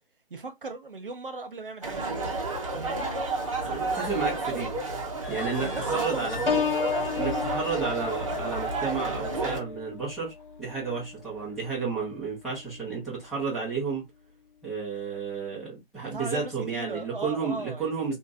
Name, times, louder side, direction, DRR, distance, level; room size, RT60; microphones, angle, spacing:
voice 1, 0.3-2.3 2.7-3.1 5.6-6.6 16.1-18.2, right 3 dB, 60° right, 1.0 m, -38 dB
sound 1, 1.8-9.6, right 3 dB, 35° right, 0.9 m, -31 dB
voice 2, 3.6-4.7 5.3-6.6 7.1-10.3 10.6-14.0 14.6-18.2, right 5 dB, ahead, 0.9 m, -32 dB
sound 2, 5.2-9.7 10.4-10.6 11.2-11.6, left 5 dB, 15° left, 1.3 m, -47 dB
Piano, 6.5-12.1 12.6-12.9, left 6 dB, 65° left, 0.6 m, -33 dB
3.6 x 2.5 x 2.5 m
figure-of-eight pair, 145°, 29 cm